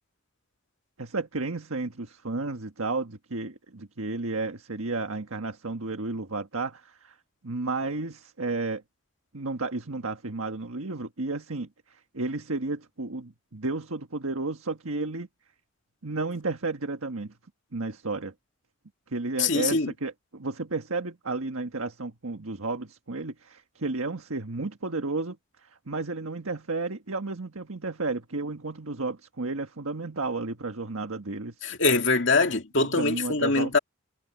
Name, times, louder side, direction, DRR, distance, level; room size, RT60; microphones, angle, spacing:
voice 1, 1.0-7.2 7.4-8.8 9.3-15.3 16.0-17.3 17.7-18.3 19.1-31.6 32.9-33.8, right 3 dB, 80° right, 1.5 m, -32 dB
voice 2, 19.4-19.9 31.6-33.8, left 3 dB, 60° left, 2.4 m, -23 dB
head